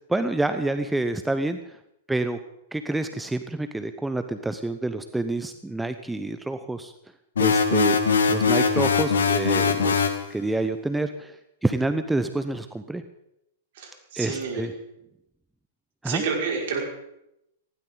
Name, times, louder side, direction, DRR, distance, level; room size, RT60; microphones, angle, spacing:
voice 1, 0.0-1.8 2.1-2.4 2.7-6.9 7.4-8.0 8.3-13.0 14.2-14.7 16.0-16.2, right 2 dB, 5° right, 9 dB, 0.9 m, -28 dB
sound 1, 7.4-10.2, left 5 dB, 75° left, 2.1 m, -21 dB
voice 2, 13.7-14.7 16.0-16.9, right 5 dB, 60° right, -1 dB, 5.7 m, -29 dB
19.5 x 16.5 x 4.0 m, 0.83 s
figure-of-eight pair, 105°, 0 cm